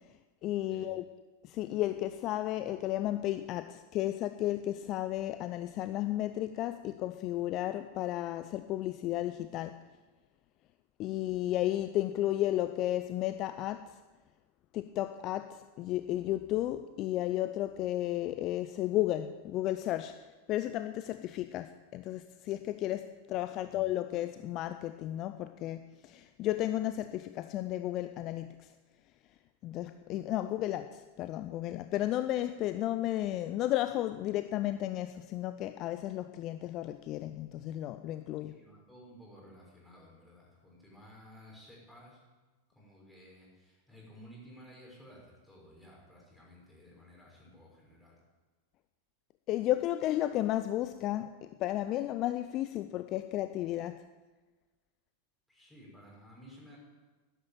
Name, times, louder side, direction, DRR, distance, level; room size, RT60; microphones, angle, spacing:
voice 1, 0.4-1.1 1.4-9.8 11.0-14.0 14.7-28.7 29.6-38.6 49.5-54.1, left 14 dB, 35° left, 11 dB, 0.5 m, -33 dB
voice 2, 38.4-42.2 42.7-48.2 55.5-56.8, equal, ahead, -4 dB, 6.1 m, -55 dB
12.0 x 12.0 x 8.8 m, 1.2 s
figure-of-eight pair, 90°, 0 cm